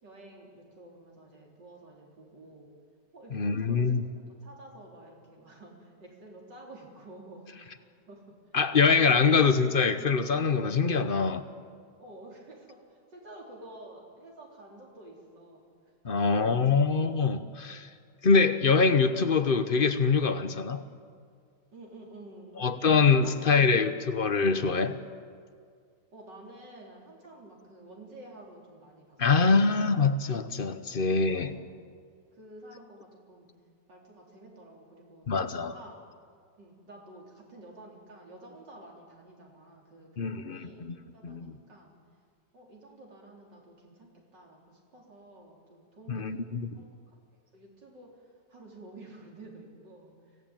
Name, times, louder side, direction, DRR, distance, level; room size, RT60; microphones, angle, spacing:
voice 1, 0.0-2.7 3.1-7.7 8.1-8.4 8.8-9.5 12.0-16.5 16.8-16.9 21.7-22.7 23.2-23.9 26.1-29.2 31.2-31.7 32.4-33.5 33.9-36.0 36.6-41.9 42.5-46.4 46.7-48.1 48.5-50.4, right 1 dB, 80° right, -1 dB, 4.6 m, -50 dB
voice 2, 3.3-4.0 8.5-11.4 16.0-17.9 18.2-20.8 22.6-25.0 29.2-31.5 35.3-35.7 40.2-40.9 41.2-41.5 46.1-46.7, left 5 dB, 40° left, 11 dB, 0.8 m, -24 dB
25.0 x 17.0 x 9.0 m, 2.1 s
omnidirectional pair, 1.9 m